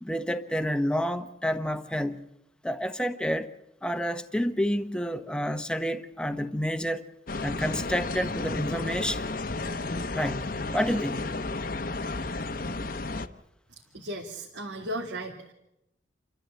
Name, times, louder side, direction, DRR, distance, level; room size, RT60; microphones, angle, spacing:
voice 1, 0.0-2.2 2.6-3.5 3.8-7.0 7.4-9.2 10.1-10.5 10.7-11.2, equal, 5° left, 1.0 m, -29 dB
sound 1, 7.3-13.3, left 3 dB, 50° left, 0.9 m, -32 dB
voice 2, 13.9-15.5, right 1 dB, 80° right, 2.3 m, -36 dB
29.0 x 13.5 x 8.3 m
head